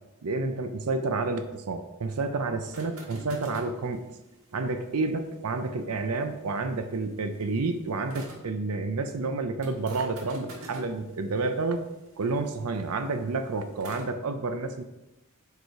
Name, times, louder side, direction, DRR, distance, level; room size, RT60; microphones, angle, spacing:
voice 1, 0.2-4.0 4.5-11.8 12.2-14.8, right 3 dB, 90° right, 8 dB, 0.6 m, -30 dB
sound 1, 2.7-8.5 9.6-14.1, right 1 dB, 70° right, 1.6 m, -49 dB
6.6 x 4.8 x 4.7 m, 0.98 s
head